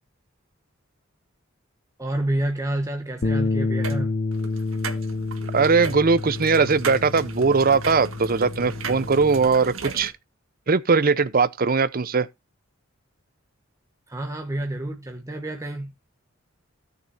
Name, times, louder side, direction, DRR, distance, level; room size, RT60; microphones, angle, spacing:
voice 1, 2.0-4.2 14.1-15.9, right 1 dB, 15° right, 1.1 m, -29 dB
Bass guitar, 3.2-9.5, left 3 dB, 45° left, 0.7 m, -29 dB
sound 1, 3.8-4.0 4.3-10.1, right 4 dB, 85° right, 1.7 m, -36 dB
voice 2, 5.5-10.1 10.7-12.3, right 4 dB, 45° right, 0.7 m, -20 dB
17.0 x 6.7 x 2.7 m
head